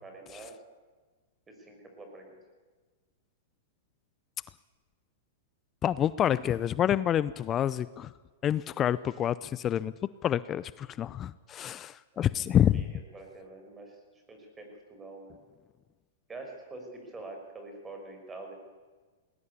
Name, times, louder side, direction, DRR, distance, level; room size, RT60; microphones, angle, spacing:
voice 1, 0.0-0.6 1.5-2.4 12.7-13.9 14.3-15.3 16.3-18.5, right 2 dB, 15° right, 4 dB, 6.0 m, -45 dB
voice 2, 5.8-8.1 8.4-9.9 10.2-12.8, left 10 dB, 30° left, 18 dB, 0.5 m, -28 dB
19.5 x 19.0 x 8.4 m, 1.4 s
hypercardioid pair, 120°, 0 cm